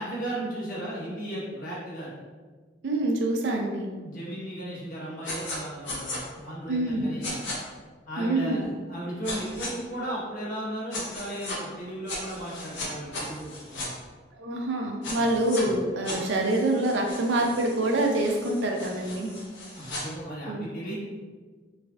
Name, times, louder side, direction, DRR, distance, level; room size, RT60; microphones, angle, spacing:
voice 1, 0.0-2.2 4.0-7.5 8.1-13.9 15.1-15.3 19.7-20.9, right 1 dB, 50° left, -7 dB, 0.9 m, -35 dB
voice 2, 2.8-3.9 6.7-7.1 8.2-8.6 14.4-19.3 20.5-20.7, right 1 dB, 90° right, 1 dB, 0.5 m, -26 dB
sound 1, 5.2-5.6 5.9-6.2 7.2-7.6 9.2-9.7 10.9-11.6 12.1-13.9 15.0-15.6 16.0-20.0, left 2 dB, 90° left, 0.7 m, -37 dB
3.3 x 3.2 x 2.2 m, 1.4 s
head